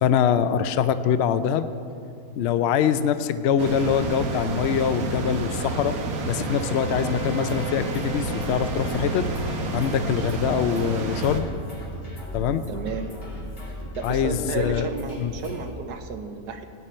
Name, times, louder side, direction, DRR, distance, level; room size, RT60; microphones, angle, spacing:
voice 1, 0.0-1.7 2.4-6.0 6.3-9.3 9.7-11.5 12.3-12.6 14.0-14.9 15.2-15.3, left 8 dB, 80° left, 11 dB, 0.6 m, -23 dB
sound 1, 3.6-11.4, right 3 dB, 65° right, 1.4 m, -29 dB
Bowed string instrument, 6.1-10.6, left 1 dB, 60° left, 2.0 m, -41 dB
sound 2, 7.5-15.8, equal, 35° left, 2.8 m, -38 dB
voice 2, 12.7-13.1 14.0-16.6, right 4 dB, 80° right, 7 dB, 1.4 m, -32 dB
17.0 x 9.2 x 4.3 m, 2.4 s
omnidirectional pair, 1.7 m